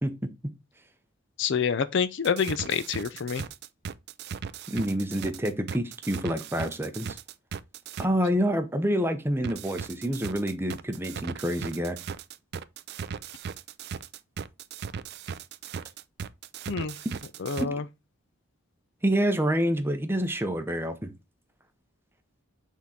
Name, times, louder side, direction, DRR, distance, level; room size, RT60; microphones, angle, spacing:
voice 1, 1.4-3.5 16.7-16.9 17.4-17.8, left 6 dB, 55° left, 0.4 m, -27 dB
sound 1, 2.2-8.1 9.4-17.7, right 6 dB, 50° right, 0.3 m, -37 dB
voice 2, 4.7-7.2 8.0-12.0 17.1-17.2 17.6-17.7 19.0-21.1, equal, 10° right, 0.7 m, -27 dB
6.1 x 3.7 x 4.2 m
head